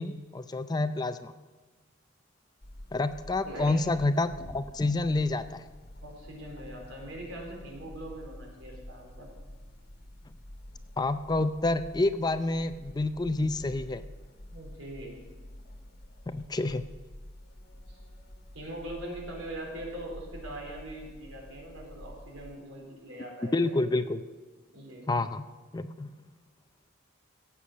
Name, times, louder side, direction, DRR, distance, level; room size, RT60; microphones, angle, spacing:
voice 1, 0.0-1.3 2.9-5.6 11.0-14.0 16.3-16.8 23.5-24.2 25.1-25.5 25.7-26.1, left 2 dB, 20° left, 11 dB, 0.4 m, -28 dB
sound 1, 2.6-22.6, left 1 dB, 50° left, 1.4 m, -48 dB
voice 2, 3.4-3.7 6.0-9.3 14.5-15.2 17.9-18.0 18.5-23.8 24.7-25.1, right 1 dB, 85° right, 0 dB, 3.9 m, -42 dB
15.5 x 8.3 x 6.2 m, 1.4 s
head